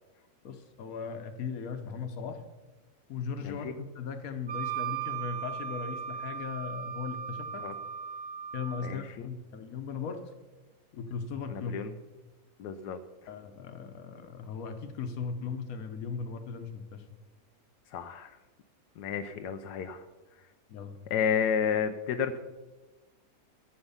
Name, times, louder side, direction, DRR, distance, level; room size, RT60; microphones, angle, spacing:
voice 1, 0.4-2.4 3.1-7.7 8.5-10.2 10.9-11.8 13.3-17.0 20.7-21.0, left 5 dB, 60° left, 8 dB, 1.4 m, -38 dB
voice 2, 3.4-3.7 7.6-7.7 8.8-9.3 11.5-11.9 12.6-13.0 17.9-18.4 19.0-20.0 21.1-22.4, left 7 dB, 85° left, 8 dB, 1.2 m, -31 dB
Wind instrument woodwind instrument, 4.5-9.0, right 8 dB, 30° right, 1.4 m, -37 dB
11.5 x 7.6 x 5.5 m, 1.2 s
omnidirectional pair, 1.7 m